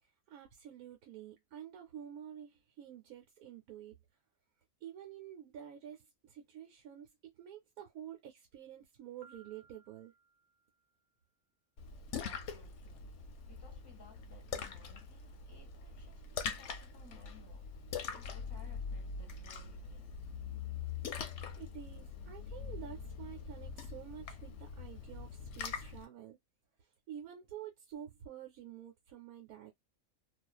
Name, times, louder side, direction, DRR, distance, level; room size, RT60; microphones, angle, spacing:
voice 1, 0.0-4.0 4.8-10.1 21.4-26.4 26.8-29.7, right 10 dB, 85° right, 1.1 m, -49 dB
Piano, 9.2-11.1, right 5 dB, 65° right, 1.0 m, -64 dB
Splash splatter, 11.8-26.1, left 6 dB, 65° left, 0.8 m, -43 dB
voice 2, 12.1-13.2 13.5-17.8 18.1-20.2, left 3 dB, 25° left, 0.7 m, -61 dB
2.4 x 2.4 x 2.2 m
omnidirectional pair, 1.5 m